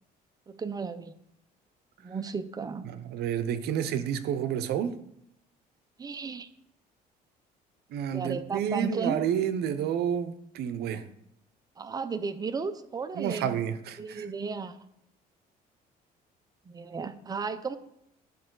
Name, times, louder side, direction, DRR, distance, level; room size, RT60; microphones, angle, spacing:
voice 1, 0.5-1.1 2.0-2.9 6.0-6.5 8.1-9.3 11.8-13.6 14.0-14.8 16.7-17.8, right 5 dB, 20° right, 10 dB, 0.6 m, -34 dB
voice 2, 2.9-5.0 7.9-11.1 13.2-14.2, right 9 dB, 70° right, 11 dB, 0.7 m, -30 dB
10.5 x 5.3 x 3.9 m, 0.77 s
cardioid pair, 110°, 17 cm